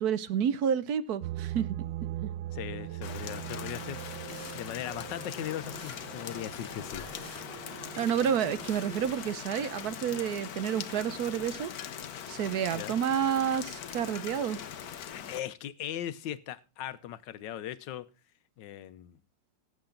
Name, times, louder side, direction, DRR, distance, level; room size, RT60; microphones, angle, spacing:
voice 1, 0.0-1.8 2.2-2.3 8.0-11.7 12.3-14.6, right 8 dB, 65° right, 1.2 m, -29 dB
sound 1, 1.2-9.1, right 13 dB, 85° right, 1.5 m, -41 dB
voice 2, 2.5-7.1 12.7-13.0 15.0-18.1 18.6-19.2, left 11 dB, 90° left, 1.5 m, -39 dB
Rain, 3.0-15.4, left 9 dB, 60° left, 1.4 m, -41 dB
sound 2, 3.6-4.6 5.0-6.0 6.3-7.4 7.9-9.3, left 2 dB, 40° left, 3.6 m, -50 dB
17.5 x 7.8 x 3.8 m
omnidirectional pair, 1.9 m